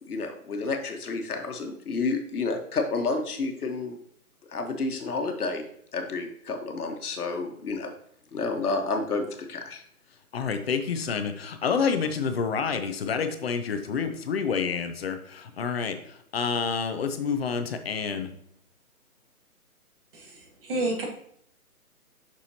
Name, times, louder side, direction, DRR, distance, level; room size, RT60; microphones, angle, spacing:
voice 1, 0.1-4.0 4.5-5.7 5.9-7.9 8.3-9.8, left 3 dB, 80° left, 4 dB, 1.4 m, -30 dB
voice 2, 10.3-18.3, left 6 dB, 45° left, 8 dB, 0.7 m, -28 dB
voice 3, 20.1-21.0, right 2 dB, 40° right, 0 dB, 1.7 m, -30 dB
7.0 x 6.2 x 2.9 m, 0.67 s
hypercardioid pair, 155°, 44 cm